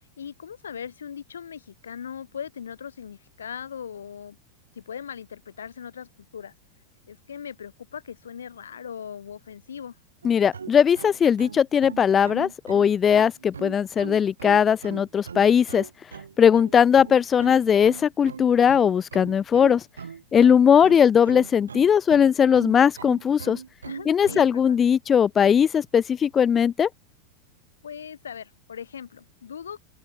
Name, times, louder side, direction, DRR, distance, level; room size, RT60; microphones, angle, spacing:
voice 1, 0.2-4.4 4.7-6.5 7.1-9.9 20.7-21.0 23.8-24.8 27.8-29.8, left 8 dB, 70° left, 2.3 m, -39 dB
voice 2, 10.2-15.8 16.4-19.8 20.3-23.6 24.1-26.9, left 8 dB, 20° left, 0.6 m, -19 dB
sound 1, 10.2-24.5, right 6 dB, 70° right, 5.3 m, -39 dB
open air
figure-of-eight pair, 90°, 0 cm